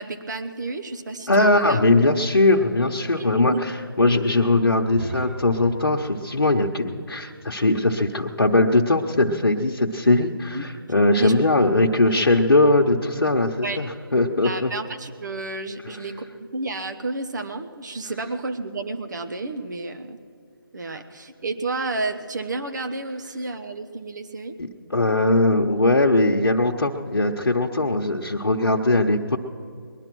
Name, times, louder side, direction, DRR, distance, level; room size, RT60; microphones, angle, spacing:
voice 1, 0.0-1.8 3.2-3.6 10.5-10.6 11.1-11.3 11.6-11.7 13.6-13.8 14.4-20.2 20.7-24.6, right 3 dB, 50° right, 8 dB, 1.2 m, -31 dB
voice 2, 1.3-14.7 24.9-29.4, left 2 dB, 90° left, -1 dB, 1.0 m, -20 dB
sound 1, 4.9-8.7, right 4 dB, 35° right, 0.8 m, -41 dB
20.5 x 11.0 x 6.2 m, 2.2 s
figure-of-eight pair, 160°, 12 cm